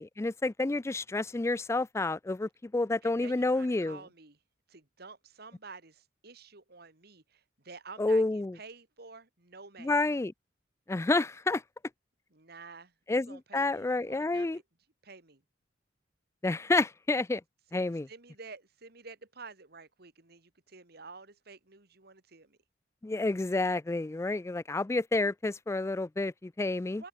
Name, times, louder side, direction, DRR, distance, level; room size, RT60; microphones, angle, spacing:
voice 1, 0.0-4.0 8.0-8.6 9.8-10.3 10.9-11.6 13.1-14.6 16.4-17.4 17.7-18.1 23.0-27.0, left 2 dB, 15° left, 0.3 m, -29 dB
voice 2, 3.0-4.4 4.7-10.0 12.3-14.6 15.0-15.4 17.7-22.6 26.9-27.1, right 4 dB, 60° right, 2.5 m, -50 dB
open air
head